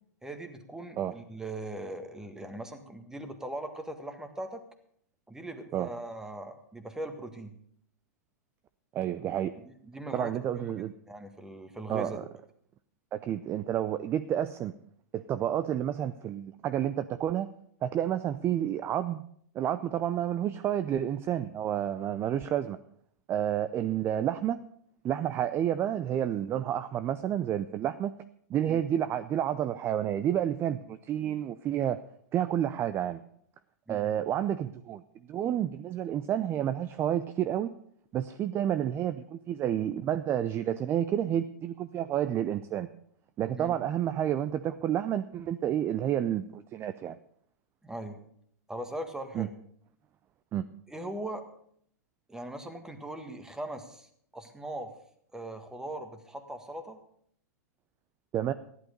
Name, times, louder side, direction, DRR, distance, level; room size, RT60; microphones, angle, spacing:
voice 1, 0.2-4.6 5.3-7.5 9.9-10.7 11.1-12.2 28.7-28.8 33.9-34.1 43.6-43.7 47.8-48.2 48.7-49.5 50.9-51.5 52.3-54.9 55.3-57.0, right 1 dB, 5° right, 7 dB, 1.7 m, -40 dB
voice 2, 8.9-9.5 10.1-10.9 11.9-12.2 13.1-14.7 15.1-17.5 17.8-19.3 19.5-22.8 23.3-24.6 25.0-28.1 28.5-32.0 32.3-33.2 33.9-35.0 35.3-37.7 38.1-42.9 43.4-47.2 49.3-49.5 50.5-50.6 58.3-58.5, right 10 dB, 25° right, 12 dB, 0.5 m, -30 dB
15.0 x 11.0 x 5.2 m, 0.65 s
figure-of-eight pair, 100°, 9 cm